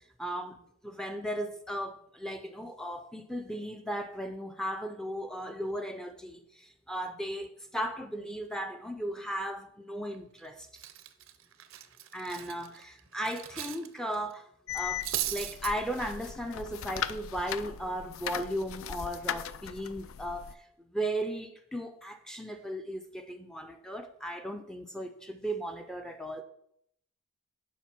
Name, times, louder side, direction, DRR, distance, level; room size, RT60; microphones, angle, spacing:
voice 1, 0.2-10.7 12.1-14.5 14.7-20.7 20.9-26.4, equal, 5° left, 0.4 m, -36 dB
Cutlery silverware, 10.1-10.4 10.7-13.9 14.1-14.3 14.7-15.7, right 13 dB, 65° right, 0.6 m, -37 dB
sound 1, 14.7-20.5, left 9 dB, 70° left, 0.4 m, -38 dB
7.2 x 5.0 x 5.9 m
head